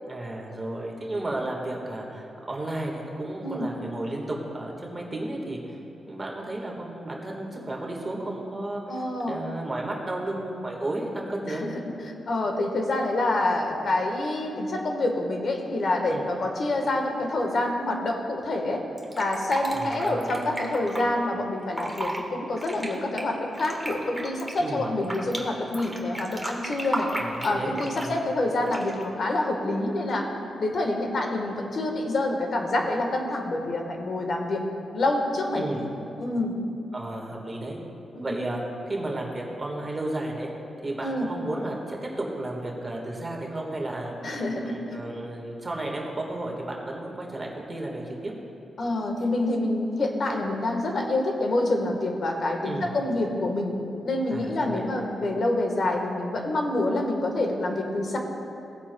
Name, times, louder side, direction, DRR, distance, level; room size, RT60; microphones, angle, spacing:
voice 1, 0.0-5.8 6.1-8.8 9.3-11.6 16.1-16.2 19.7-20.3 24.6-24.9 27.2-28.2 35.5-35.8 36.9-37.8 38.2-40.5 40.8-44.1 44.6-48.3 52.6-52.9 54.3-54.9, right 1 dB, 25° right, -1 dB, 1.5 m, -33 dB
voice 2, 8.9-9.4 11.5-11.8 12.3-18.8 19.2-27.1 27.4-30.3 30.6-34.6 34.9-35.8 36.2-36.6 38.1-38.3 41.0-41.3 44.2-44.8 48.8-53.7 54.0-58.2, left 2 dB, 55° left, 2 dB, 1.3 m, -27 dB
Fill (with liquid), 19.0-21.0 21.6-22.2 22.6-25.4 25.7-28.2 28.7-29.0, right 1 dB, 5° right, 1.4 m, -33 dB
17.5 x 8.5 x 2.3 m, 2.8 s
cardioid pair, 95°, 0 cm